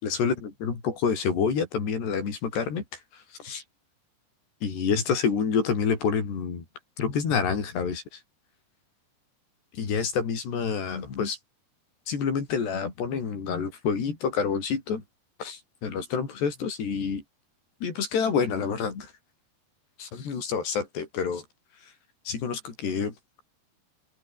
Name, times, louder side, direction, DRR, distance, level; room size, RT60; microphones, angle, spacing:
voice 1, 0.0-2.8 3.4-3.6 4.6-6.6 7.0-8.0 9.7-11.4 12.1-15.0 15.4-17.2 17.8-19.1 20.0-21.4 22.3-23.4, left 6 dB, 70° left, 7.4 m, -28 dB
open air
omnidirectional pair, 4.9 m